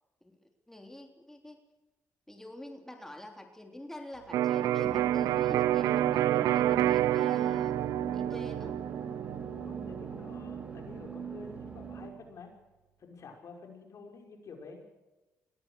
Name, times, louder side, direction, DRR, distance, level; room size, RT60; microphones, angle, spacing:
voice 1, 0.2-1.6 2.3-7.8 8.1-8.8, left 1 dB, 5° left, 4 dB, 3.5 m, -46 dB
Electric guitar, 4.3-12.1, right 12 dB, 85° right, 0.7 m, -29 dB
sound 1, 4.8-12.1, right 3 dB, 25° right, 2.6 m, -43 dB
voice 2, 9.3-12.5 13.0-14.8, left 4 dB, 60° left, 3 dB, 5.5 m, -49 dB
22.0 x 18.0 x 6.6 m, 1.1 s
supercardioid pair, 60°, 6 cm